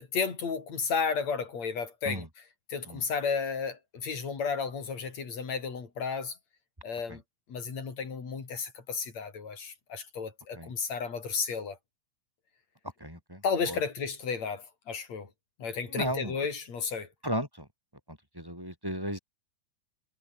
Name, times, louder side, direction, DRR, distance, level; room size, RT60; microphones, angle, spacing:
voice 1, 0.0-2.3 2.7-6.4 6.8-7.2 7.5-11.8 13.4-15.3 15.6-17.1, left 5 dB, 50° left, 5.3 m, -33 dB
voice 2, 13.0-13.8 15.9-16.3 17.2-17.7 18.1-19.2, equal, 5° right, 5.4 m, -35 dB
omnidirectional pair, 4.2 m